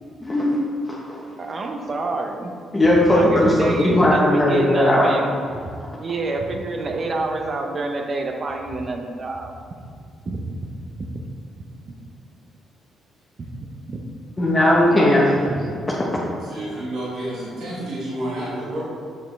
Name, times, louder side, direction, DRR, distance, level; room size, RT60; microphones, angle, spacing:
voice 1, 0.2-0.6 0.9-1.2 2.7-5.2 14.4-15.3 16.0-16.1, left 1 dB, 25° left, -5 dB, 1.1 m, -17 dB
voice 2, 1.4-2.5 2.9-5.3 6.0-9.5 10.3-11.1 13.9-14.0 14.9-15.7, right 2 dB, 40° right, 3 dB, 0.8 m, -28 dB
voice 3, 16.4-18.8, right 1 dB, 75° right, -7 dB, 1.6 m, -30 dB
6.9 x 5.8 x 3.3 m, 2.3 s
cardioid pair, 90°, 0 cm